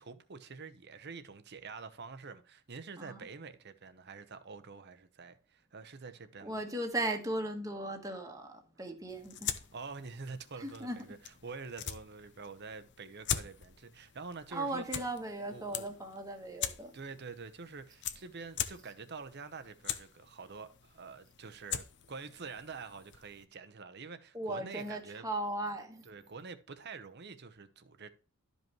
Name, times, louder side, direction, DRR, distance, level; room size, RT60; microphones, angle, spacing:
voice 1, 0.0-6.6 9.7-15.0 15.4-16.0 16.9-25.3 26.0-28.1, right 4 dB, 50° right, 0.8 m, -47 dB
voice 2, 6.4-9.5 10.6-11.0 14.5-17.0 24.3-26.0, right 1 dB, 15° right, 1.3 m, -37 dB
sound 1, 9.1-23.5, left 9 dB, 55° left, 0.7 m, -43 dB
12.5 x 5.4 x 3.0 m
head